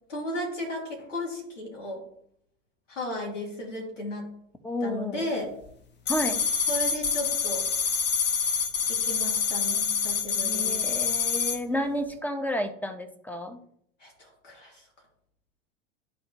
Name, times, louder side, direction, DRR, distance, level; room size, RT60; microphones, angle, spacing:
voice 1, 0.1-2.0 2.9-4.3 4.8-5.5 6.7-7.7 8.9-10.9 14.0-14.8, left 1 dB, 85° left, -2 dB, 2.8 m, -34 dB
voice 2, 4.6-5.3 6.1-6.4 10.4-13.6, left 1 dB, 5° left, 7 dB, 0.9 m, -31 dB
sound 1, 6.1-11.6, left 6 dB, 30° left, 1.1 m, -26 dB
12.0 x 4.3 x 2.9 m, 0.68 s
hypercardioid pair, 90°, 37 cm